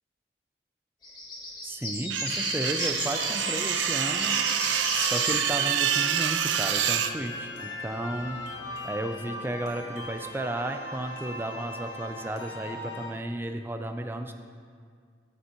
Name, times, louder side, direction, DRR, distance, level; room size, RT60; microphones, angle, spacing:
sound 1, 1.0-5.5 6.1-6.2, left 1 dB, 25° left, 1.7 m, -34 dB
voice 1, 1.6-8.4 8.8-14.3, right 1 dB, 10° right, 6 dB, 0.4 m, -34 dB
sound 2, 2.1-7.1, right 10 dB, 90° right, 0.4 m, -27 dB
sound 3, 3.1-13.1, left 1 dB, 85° left, 1.0 m, -38 dB
12.5 x 6.9 x 2.9 m, 2.1 s
head